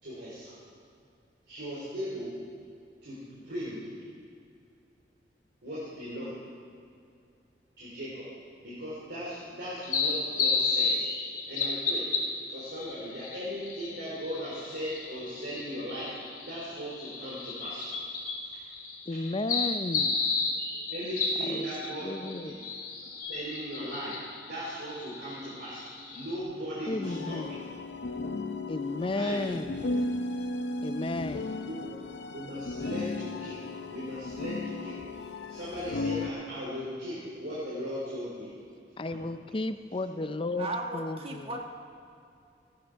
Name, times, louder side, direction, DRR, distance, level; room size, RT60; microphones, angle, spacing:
voice 1, 0.0-0.5 1.5-2.3 3.0-3.8 5.6-6.3 7.8-8.2 8.6-11.0 11.5-12.0 12.5-16.1 16.4-17.9 20.9-22.1 22.4-22.5 23.3-24.1 24.4-25.8 26.1-27.5 29.1-29.5 31.7-31.9 32.3-33.6 33.9-38.5, equal, 75° right, -8 dB, 3.5 m, -38 dB
sound 1, 9.8-26.4, left 4 dB, 50° left, 2.1 m, -33 dB
voice 2, 19.1-20.3 21.4-21.7 22.0-22.6 26.9-27.6 28.7-29.9 30.8-31.6 39.0-41.6, left 2 dB, 30° left, 10 dB, 0.5 m, -34 dB
sound 2, 27.0-36.3, left 2 dB, 85° left, 0.7 m, -35 dB
voice 3, 40.6-41.6, right 2 dB, 35° right, 2 dB, 1.5 m, -35 dB
16.5 x 11.5 x 4.6 m, 2.5 s
head